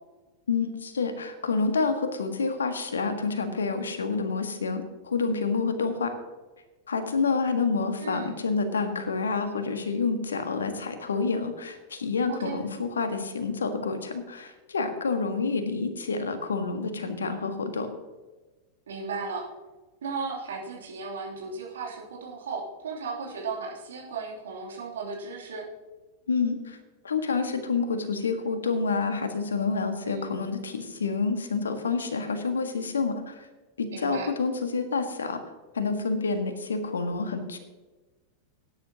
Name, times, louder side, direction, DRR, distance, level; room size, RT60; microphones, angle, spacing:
voice 1, 0.5-6.1 6.9-17.9 26.3-26.8 27.0-33.5 33.8-35.4 35.7-37.6, left 4 dB, 70° left, 7 dB, 1.5 m, -28 dB
voice 2, 8.0-8.4 12.3-12.6 18.9-19.5 20.0-25.7 30.0-30.3 33.9-34.3, right 4 dB, 65° right, -2 dB, 2.9 m, -35 dB
18.0 x 10.0 x 2.9 m, 1.2 s
figure-of-eight pair, 90°, 0 cm